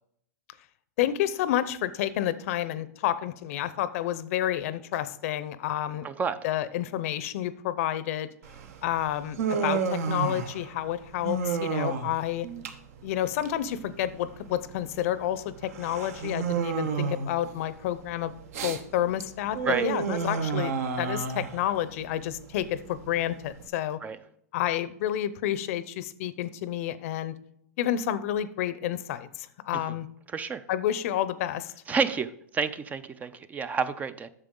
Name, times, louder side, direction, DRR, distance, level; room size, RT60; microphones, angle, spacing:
voice 1, 1.0-6.1 6.4-8.3 8.8-12.5 13.0-18.3 18.6-24.0 24.5-27.3 27.8-30.1 30.7-31.7, left 12 dB, 60° left, 15 dB, 0.6 m, -30 dB
voice 2, 6.0-6.4 19.6-19.9 24.0-24.2 29.7-29.8 30.3-30.6 31.9-34.3, right 5 dB, 20° right, 14 dB, 0.4 m, -29 dB
Human voice, 8.4-23.7, right 5 dB, 65° right, 1.0 m, -32 dB
8.9 x 6.6 x 3.7 m, 0.72 s
hypercardioid pair, 125°, 9 cm